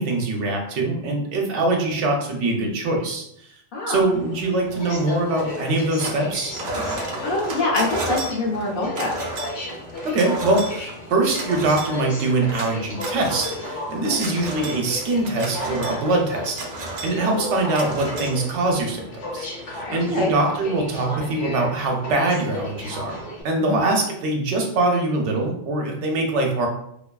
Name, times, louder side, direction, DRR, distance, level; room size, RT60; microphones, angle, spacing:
voice 1, 0.0-3.5 3.9-6.5 10.0-19.1 19.3-26.7, right 2 dB, 75° right, 1 dB, 0.9 m, -23 dB
Aircraft, 4.0-23.4, left 1 dB, 75° left, 1.1 m, -34 dB
sound 1, 5.4-6.3 6.5-18.9, right 2 dB, 60° right, 0.4 m, -33 dB
voice 2, 7.2-9.1 19.9-20.3 23.6-23.8, left 2 dB, 55° left, -1 dB, 0.7 m, -24 dB
2.5 x 2.2 x 2.2 m, 0.72 s
omnidirectional pair, 1.2 m